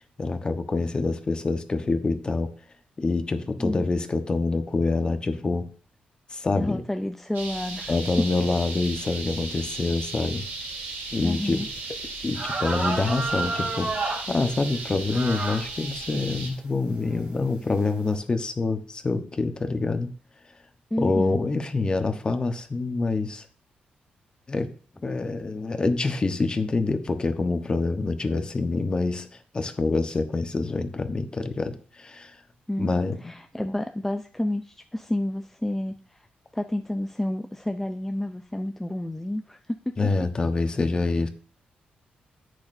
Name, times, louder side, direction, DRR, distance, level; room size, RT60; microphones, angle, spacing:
voice 1, 0.2-2.5 3.0-5.6 6.3-6.8 7.9-10.4 11.1-11.6 12.2-20.1 21.0-23.4 24.5-24.7 25.0-29.3 29.5-32.3 32.8-33.3 40.0-41.3, left 3 dB, 30° left, 8 dB, 1.1 m, -26 dB
voice 2, 6.6-7.9 11.2-11.7 20.9-21.4 32.7-32.9 33.2-36.3 36.5-40.0, left 1 dB, 10° left, 6 dB, 0.5 m, -30 dB
sound 1, 7.3-16.5, right 3 dB, 80° right, 3.4 m, -36 dB
sound 2, 11.8-11.9 12.3-14.3 15.1-15.6 16.3-16.4 17.1-17.4, right 3 dB, 60° right, 3.1 m, -29 dB
10.5 x 8.3 x 2.7 m, 0.42 s
cardioid pair, 110°, 3 cm